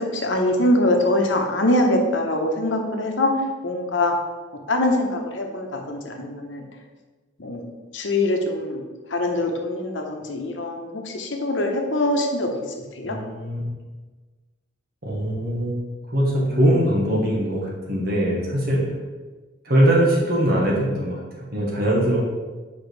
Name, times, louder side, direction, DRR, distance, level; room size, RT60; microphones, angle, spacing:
voice 1, 0.0-3.3 3.6-4.1 4.7-6.6 7.4-7.6 7.9-8.8 9.1-12.5 13.0-13.2, left 1 dB, 80° left, 2 dB, 1.0 m, -23 dB
voice 2, 13.0-13.6 15.0-18.8 19.6-22.3, right 1 dB, 55° right, -3 dB, 1.5 m, -21 dB
7.0 x 4.9 x 3.3 m, 1.3 s
head